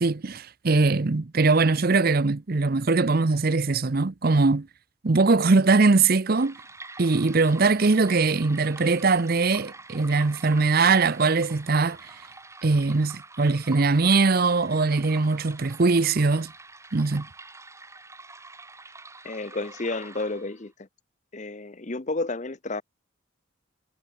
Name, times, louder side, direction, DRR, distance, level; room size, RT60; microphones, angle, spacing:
voice 1, 0.0-4.7 5.0-6.6 7.0-12.0 12.6-16.5 16.9-17.3, right 3 dB, 45° right, 0.7 m, -21 dB
sound 1, 6.3-20.7, right 3 dB, 15° right, 3.6 m, -46 dB
voice 2, 19.2-20.9 21.3-22.8, left 2 dB, 35° left, 0.8 m, -31 dB
head